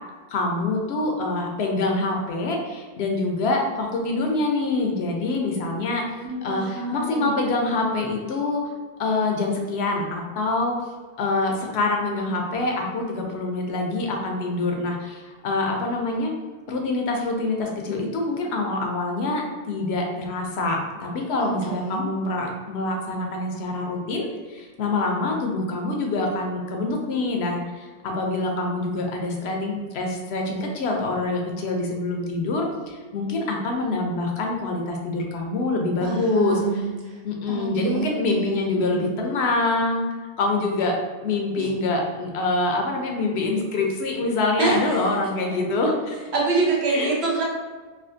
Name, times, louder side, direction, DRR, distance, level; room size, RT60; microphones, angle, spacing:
voice 1, 0.3-2.6 3.0-6.0 6.4-6.6 6.9-8.6 9.0-10.7 11.2-14.9 15.4-16.3 16.7-24.3 24.8-27.6 28.0-32.7 33.1-36.6 37.2-40.1 40.4-40.9 41.2-46.1 46.9-47.1, left 2 dB, 90° left, 1 dB, 0.9 m, -25 dB
voice 2, 6.2-7.4 21.4-22.1 36.0-37.2 37.5-38.6 38.9-39.2 41.6-41.7 44.6-45.0 45.5-45.6 46.3-47.4, right 4 dB, 80° right, -2 dB, 1.0 m, -26 dB
3.3 x 2.4 x 2.5 m, 1.4 s
omnidirectional pair, 1.1 m